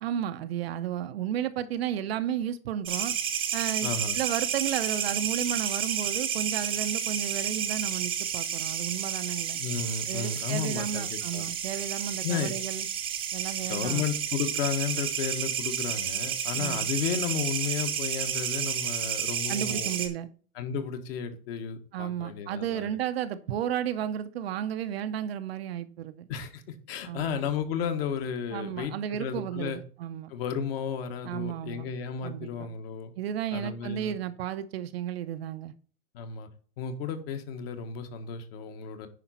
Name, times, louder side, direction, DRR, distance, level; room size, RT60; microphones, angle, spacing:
voice 1, 0.0-3.2 3.5-9.6 10.1-12.9 13.3-14.1 16.6-16.8 19.5-20.3 21.9-26.3 27.0-27.4 28.5-30.3 31.2-31.9 32.2-32.7 33.2-35.7, right 10 dB, 45° right, 10 dB, 0.7 m, -33 dB
sound 1, 2.9-20.1, right 9 dB, 10° right, 0.8 m, -31 dB
voice 2, 3.8-4.1 9.6-11.5 12.2-12.5 13.7-20.0 20.5-22.9 26.3-26.6 26.9-29.8 30.3-33.1 33.5-34.2 36.1-36.5 36.8-39.1, left 7 dB, 40° left, 7 dB, 1.5 m, -33 dB
10.0 x 5.1 x 4.2 m, 0.42 s
hypercardioid pair, 160°, 44 cm